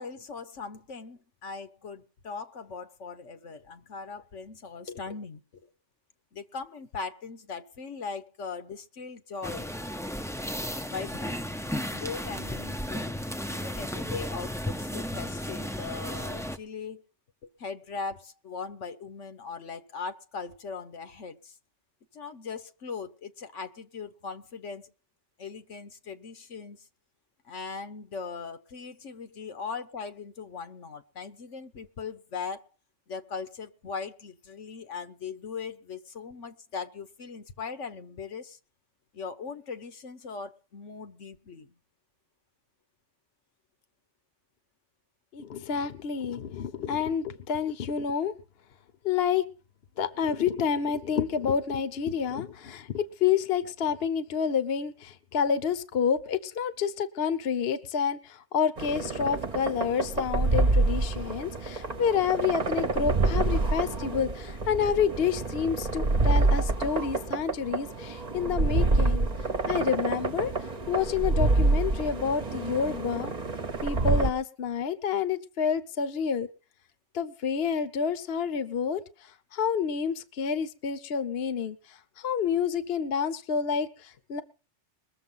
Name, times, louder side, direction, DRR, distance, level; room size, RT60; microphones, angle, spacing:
voice 1, 0.0-5.7 6.3-9.7 10.9-11.4 11.9-13.1 13.5-17.0 17.4-21.5 22.1-24.9 25.4-26.9 27.4-32.7 33.1-38.6 39.1-41.8, left 5 dB, 80° left, 1.5 m, -39 dB
sound 1, 9.4-16.6, equal, 5° left, 0.5 m, -34 dB
voice 2, 45.3-48.3 49.0-49.4 50.0-69.3 69.7-70.5 70.9-73.3 73.8-76.5 77.1-79.0 79.5-84.4, left 7 dB, 60° left, 1.1 m, -29 dB
sound 2, 58.8-74.3, right 3 dB, 35° right, 1.0 m, -27 dB
21.5 x 7.1 x 5.6 m
omnidirectional pair, 1.2 m